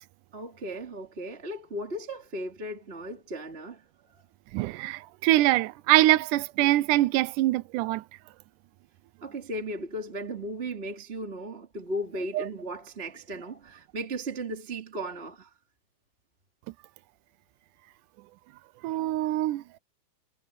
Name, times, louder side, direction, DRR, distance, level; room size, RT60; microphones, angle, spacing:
voice 1, 0.3-3.8 4.1-4.2 9.2-15.5, right 1 dB, 20° right, 2.3 m, -36 dB
voice 2, 4.5-8.0 12.4-12.5 18.8-19.6, right 16 dB, 90° right, 2.1 m, -24 dB
omnidirectional pair, 3.6 m